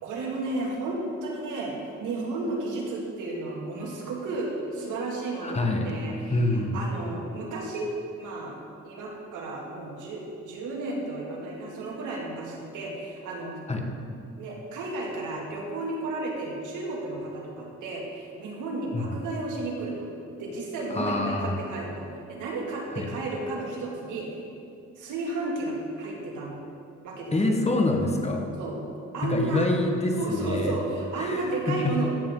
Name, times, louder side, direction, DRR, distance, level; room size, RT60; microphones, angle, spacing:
voice 1, 0.0-1.7 2.0-7.9 8.2-8.6 8.8-13.6 14.4-20.1 20.4-24.3 25.0-26.5 27.0-27.6 28.6-28.8 29.1-29.6 30.2-32.1, right 2 dB, 85° right, -2 dB, 2.5 m, -33 dB
voice 2, 5.4-5.9 6.3-6.8 13.7-13.9 18.9-19.1 20.9-21.6 22.9-23.1 27.3-28.5 29.2-30.8 31.2-32.0, left 2 dB, 20° left, 3 dB, 1.4 m, -26 dB
14.5 x 8.5 x 3.9 m, 2.5 s
cardioid pair, 90°, 30 cm